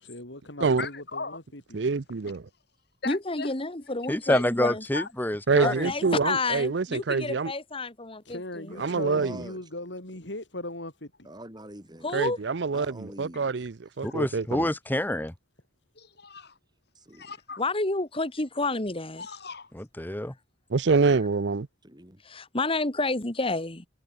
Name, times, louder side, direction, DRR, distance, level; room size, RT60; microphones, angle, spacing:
voice 1, 0.0-1.8 8.2-11.3, left 1 dB, 80° left, 6.7 m, -39 dB
voice 2, 0.8-1.4 3.0-3.5 4.3-5.1 14.0-14.1 16.0-16.6 17.1-17.6 19.2-19.7, left 4 dB, 60° left, 7.7 m, -37 dB
voice 3, 1.7-2.5 5.5-7.5 8.8-9.4 12.1-14.7 20.7-21.7, right 4 dB, 70° right, 0.6 m, -26 dB
voice 4, 3.0-4.8 5.6-8.7 12.0-12.4 17.6-19.2 22.2-23.9, left 2 dB, 30° left, 2.3 m, -30 dB
voice 5, 4.1-5.9 14.0-15.3 20.0-20.3, left 1 dB, 10° left, 1.0 m, -27 dB
voice 6, 8.7-9.6 11.2-12.1 12.7-13.5 16.9-17.3 21.8-22.2, right 1 dB, 25° right, 4.8 m, -44 dB
head